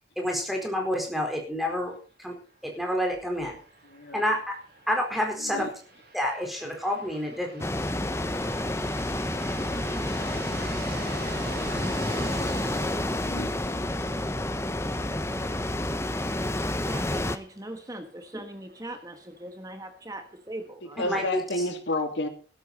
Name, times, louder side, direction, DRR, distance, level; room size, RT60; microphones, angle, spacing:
voice 1, 0.2-1.9 2.2-2.3 2.6-3.6 4.1-4.6 4.9-5.7 6.1-7.6 21.0-21.4, equal, ahead, 4.2 m, -28 dB
sound 1, 3.1-20.7, right 3 dB, 60° right, 6.7 m, -46 dB
voice 2, 3.9-4.2 5.4-5.7 13.2-14.0 21.0-22.3, left 1 dB, 85° left, 2.7 m, -31 dB
sound 2, 7.6-17.4, left 1 dB, 15° left, 0.8 m, -29 dB
voice 3, 16.8-21.2, right 1 dB, 20° right, 1.4 m, -40 dB
16.5 x 13.0 x 4.2 m
head